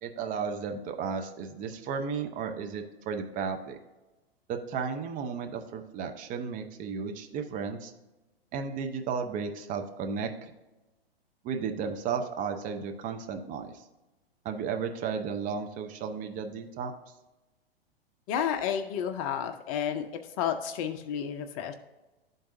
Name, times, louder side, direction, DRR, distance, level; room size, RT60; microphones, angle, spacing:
voice 1, 0.0-3.8 4.5-7.9 8.5-10.5 11.4-13.7 14.4-16.9, right 6 dB, 25° right, 5 dB, 0.7 m, -34 dB
voice 2, 18.3-20.1 20.4-21.7, left 8 dB, 35° left, 7 dB, 0.6 m, -31 dB
11.5 x 3.9 x 2.6 m, 1.1 s
figure-of-eight pair, 110°, 30 cm